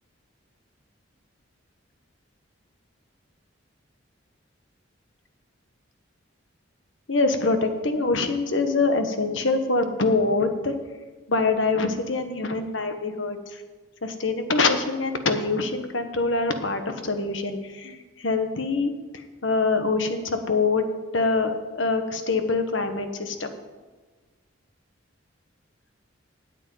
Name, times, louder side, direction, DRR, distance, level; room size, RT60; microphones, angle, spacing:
voice 1, 7.1-10.7 11.3-13.6 14.0-20.8 21.1-23.6, left 3 dB, 70° left, 7 dB, 1.3 m, -24 dB
9.3 x 8.2 x 9.1 m, 1.3 s
head